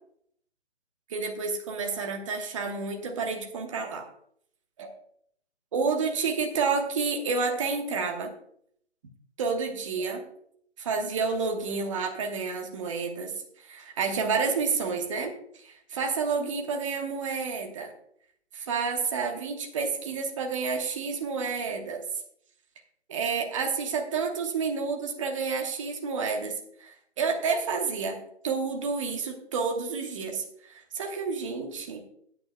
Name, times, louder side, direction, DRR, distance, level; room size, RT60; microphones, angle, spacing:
voice 1, 1.1-4.1 4.8-4.9 5.7-8.3 9.4-10.2 10.8-17.9 18.5-22.0 23.1-26.5 26.8-28.2 28.4-32.0, right 5 dB, 30° right, 3 dB, 1.2 m, -30 dB
14.5 x 9.3 x 2.2 m, 0.67 s
figure-of-eight pair, 145°, 34 cm